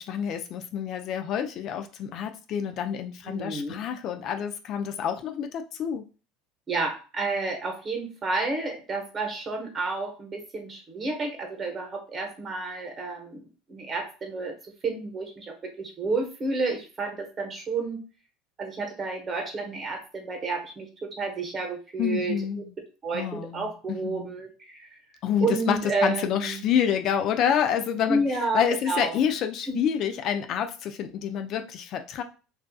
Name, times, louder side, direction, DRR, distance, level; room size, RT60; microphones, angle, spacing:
voice 1, 0.0-6.1 22.0-22.6 23.1-24.3 25.2-32.2, left 8 dB, 50° left, 0.3 m, -28 dB
voice 2, 3.2-3.8 6.7-13.4 13.7-14.5 14.8-18.0 18.6-22.4 23.0-24.9 25.4-26.6 28.1-29.2 29.7-29.8, right 3 dB, 30° right, 0.8 m, -30 dB
2.5 x 2.3 x 2.3 m
supercardioid pair, 105°, 0 cm